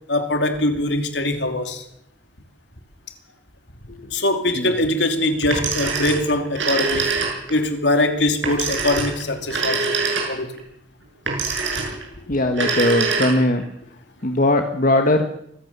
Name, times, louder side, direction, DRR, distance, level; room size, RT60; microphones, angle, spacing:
voice 1, 0.1-1.8 4.1-7.2 7.5-10.0 10.3-10.6, left 1 dB, 70° left, 2.7 m, -22 dB
Telephone, 5.4-7.6 8.4-10.6 11.3-12.1 12.5-13.6, right 4 dB, 85° right, 7.1 m, -24 dB
voice 2, 12.3-13.6 14.2-15.2, left 1 dB, 50° left, 1.6 m, -19 dB
24.5 x 16.0 x 6.9 m
head